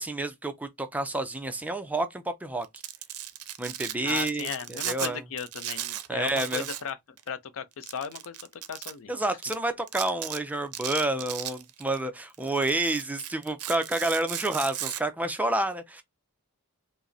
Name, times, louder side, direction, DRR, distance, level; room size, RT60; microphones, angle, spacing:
voice 1, 0.0-2.7 3.6-5.2 6.1-6.7 9.1-16.0, right 2 dB, 5° right, 0.4 m, -29 dB
Domestic sounds home sounds, 2.6-5.1 5.4-6.9 7.2-7.3 7.8-8.9 9.4-9.5 9.9-10.4 10.7-12.0 12.3-15.0, right 12 dB, 75° right, 0.5 m, -36 dB
voice 2, 4.0-7.0 7.3-9.1, left 7 dB, 65° left, 0.5 m, -36 dB
5.0 x 2.0 x 2.6 m
head